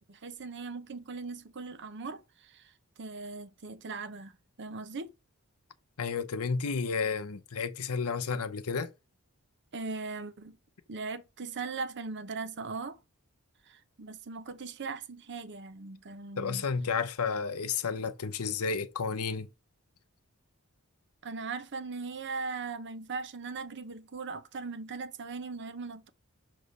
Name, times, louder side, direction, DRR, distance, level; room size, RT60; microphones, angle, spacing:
voice 1, 0.1-2.7 3.0-4.3 4.6-5.1 9.7-10.6 10.9-13.0 13.7-16.6 21.2-26.1, right 4 dB, 55° right, 0.7 m, -39 dB
voice 2, 6.0-8.9 16.4-19.5, left 5 dB, 75° left, 0.7 m, -31 dB
6.6 x 3.0 x 5.3 m
head